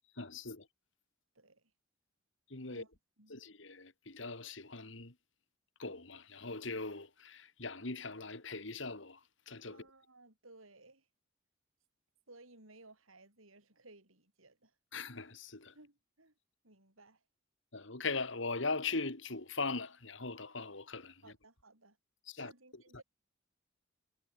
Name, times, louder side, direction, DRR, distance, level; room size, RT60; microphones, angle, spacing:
voice 1, 0.2-0.7 2.5-2.8 3.3-5.1 5.8-9.2 9.5-9.8 14.9-15.7 17.7-21.2 22.3-22.5 22.9-23.0, left 3 dB, 65° left, 2.6 m, -40 dB
voice 2, 1.3-1.7 2.7-2.9 3.2-3.4 9.7-11.1 12.3-14.8 15.7-16.3 16.6-17.2 21.2-22.0 22.4-23.0, right 2 dB, 90° right, 7.6 m, -59 dB
head